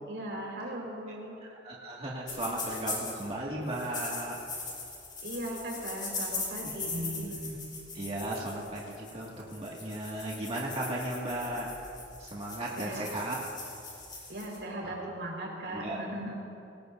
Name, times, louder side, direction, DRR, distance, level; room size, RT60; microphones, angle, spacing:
voice 1, 0.1-1.3 5.2-7.3 12.8-13.2 14.3-16.3, right 1 dB, 80° right, -2 dB, 4.6 m, -38 dB
voice 2, 1.4-4.4 6.9-7.6 7.9-11.7 12.2-13.4 14.8-15.0 15.7-16.0, right 1 dB, 35° right, -5 dB, 2.0 m, -36 dB
sound 1, 2.3-3.3 3.7-14.6, left 3 dB, 25° left, 4.7 m, -40 dB
25.5 x 19.0 x 2.7 m, 2.7 s
head